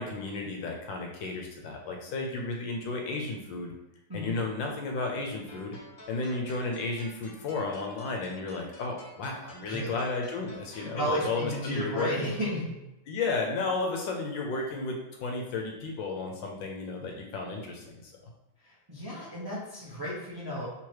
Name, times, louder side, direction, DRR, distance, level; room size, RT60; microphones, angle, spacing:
voice 1, 0.0-3.7 4.1-5.8 6.1-12.3 13.1-15.0 15.2-18.1, left 3 dB, 70° left, 1 dB, 1.3 m, -33 dB
sound 1, 5.5-12.5, equal, 50° left, 0.6 m, -52 dB
voice 2, 10.7-12.7 18.6-20.7, equal, 20° right, -8 dB, 0.6 m, -33 dB
3.7 x 3.0 x 4.6 m, 0.97 s
omnidirectional pair, 2.3 m